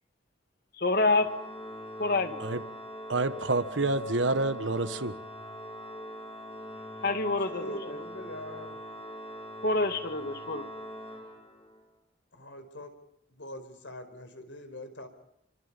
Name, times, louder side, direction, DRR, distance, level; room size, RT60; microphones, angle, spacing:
voice 1, 0.8-1.3 2.0-2.4 7.0-8.0 9.6-10.7, left 2 dB, 55° left, 2.3 m, -27 dB
Organ, 1.0-11.9, equal, 30° left, 4.4 m, -42 dB
voice 2, 3.1-5.2, right 2 dB, 80° right, 1.3 m, -28 dB
voice 3, 7.5-8.8 12.3-12.9 13.3-15.1, left 1 dB, 85° left, 4.9 m, -43 dB
29.0 x 25.5 x 5.6 m
head